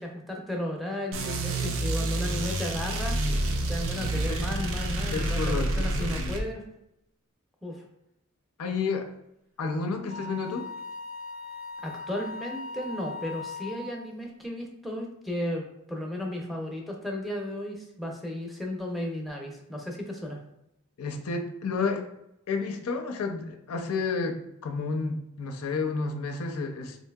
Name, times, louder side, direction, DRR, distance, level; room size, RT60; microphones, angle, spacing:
voice 1, 0.0-3.2 3.7-6.6 7.6-7.8 11.8-15.6 15.9-20.4, left 1 dB, ahead, 0 dB, 0.5 m, -34 dB
sound 1, 1.1-6.4, right 1 dB, 65° right, 0.4 m, -29 dB
voice 2, 4.1-4.5 5.1-6.4 8.6-9.1 9.6-10.7 21.0-22.1 22.5-27.0, left 4 dB, 90° left, 4 dB, 0.5 m, -31 dB
Wind instrument woodwind instrument, 10.1-13.9, left 3 dB, 90° right, 1.0 m, -39 dB
4.0 x 2.7 x 2.2 m, 0.82 s
head